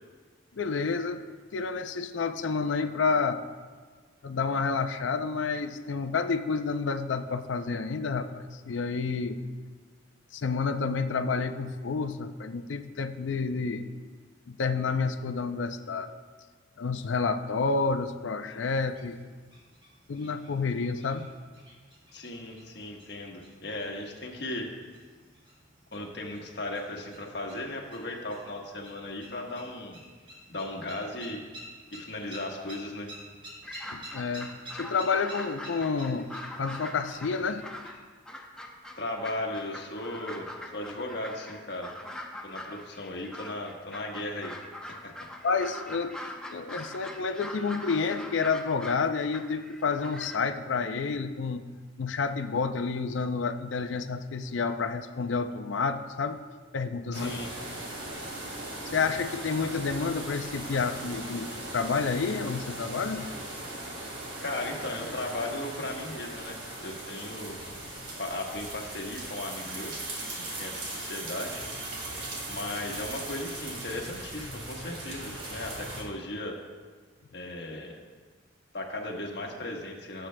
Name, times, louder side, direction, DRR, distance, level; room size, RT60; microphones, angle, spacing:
voice 1, 0.5-1.3 1.5-3.4 4.2-9.4 10.3-13.8 14.5-16.1 16.8-19.2 20.1-21.3 33.9-37.6 45.4-46.2 46.5-51.6 52.0-56.4 56.7-57.3 58.9-63.3, left 4 dB, 75° left, 9 dB, 0.5 m, -29 dB
sound 1, 18.4-37.9, right 1 dB, 30° right, 2.9 m, -51 dB
voice 2, 22.1-24.7 25.9-30.0 30.5-31.4 31.9-33.1 39.0-41.9 42.4-44.5 44.9-45.1 57.1-57.5 64.4-66.6 66.8-67.5 68.2-69.9 70.4-71.7 72.5-76.6 77.3-78.0 78.7-80.3, left 1 dB, 60° left, 1 dB, 1.3 m, -36 dB
sound 2, 33.6-38.0 38.3-50.4, left 1 dB, 5° left, 0.6 m, -42 dB
sound 3, 57.1-76.0, right 1 dB, 80° right, 2.2 m, -39 dB
17.5 x 7.7 x 2.2 m, 1.5 s
head